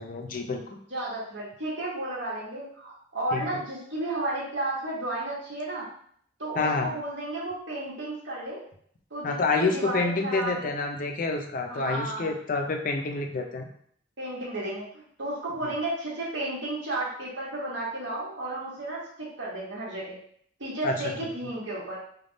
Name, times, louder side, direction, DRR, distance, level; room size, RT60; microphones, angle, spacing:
voice 1, 0.0-0.8 3.3-3.4 6.6-6.9 9.2-13.7 15.6-15.7 20.8-20.9, left 3 dB, 45° left, 4 dB, 0.5 m, -28 dB
voice 2, 0.9-5.9 6.4-8.6 9.1-10.7 11.7-12.3 14.2-20.2 20.6-22.0, right 2 dB, 80° right, -6 dB, 1.4 m, -33 dB
3.4 x 2.3 x 3.8 m, 0.62 s
head